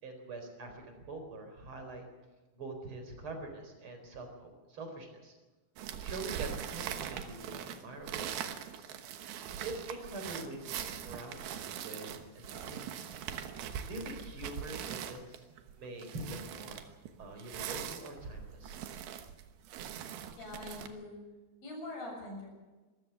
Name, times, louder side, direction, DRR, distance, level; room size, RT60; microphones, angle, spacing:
voice 1, 0.0-2.0 2.5-5.3 6.0-8.9 9.6-12.9 13.9-15.4 15.8-16.8 17.2-18.8, right 2 dB, 30° right, 5 dB, 4.4 m, -44 dB
sound 1, 5.8-20.9, right 9 dB, 70° right, 2.6 m, -42 dB
voice 2, 20.4-21.2 21.6-22.5, left 2 dB, 50° left, -1 dB, 8.9 m, -43 dB
26.0 x 14.5 x 7.0 m, 1.2 s
omnidirectional pair, 5.4 m